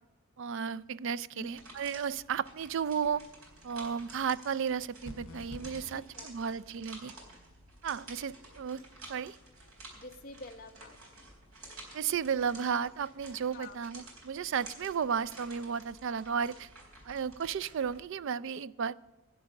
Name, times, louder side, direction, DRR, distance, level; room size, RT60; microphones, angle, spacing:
voice 1, 0.4-3.2 3.6-7.1 7.8-8.8 9.1-9.4 11.9-16.7 17.1-18.9, right 7 dB, 55° right, 18 dB, 0.4 m, -33 dB
sound 1, 1.4-18.0, right 2 dB, 75° right, 3.9 m, -52 dB
sound 2, 5.0-5.9, left 1 dB, 60° left, 2.9 m, -45 dB
voice 2, 5.9-6.5 9.9-11.0 13.5-13.8, left 2 dB, 40° left, 4 dB, 1.0 m, -48 dB
11.0 x 9.8 x 6.4 m, 1.2 s
head